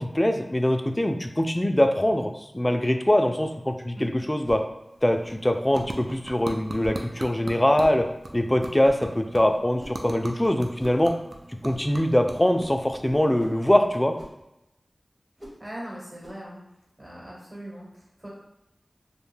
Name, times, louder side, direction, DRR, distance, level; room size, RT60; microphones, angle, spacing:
voice 1, 0.0-4.6 5.0-8.0 8.3-11.1 11.6-14.1, left 1 dB, 20° left, 5 dB, 0.3 m, -23 dB
sound 1, 4.4-4.7 5.8-6.0 6.8-7.1 7.8-8.0 8.8-9.1 9.8-10.1 10.8-11.0 11.7-11.9 12.6-12.8 13.4-13.6 14.2-14.4 15.4-15.6 16.2-16.4, equal, 20° right, 0.8 m, -42 dB
sound 2, 4.8-14.2, right 1 dB, 70° right, 0.3 m, -41 dB
voice 2, 15.6-16.6 17.0-18.3, right 1 dB, 40° right, -5 dB, 1.1 m, -40 dB
2.5 x 2.1 x 3.2 m, 0.88 s
wide cardioid pair, 40°, 0 cm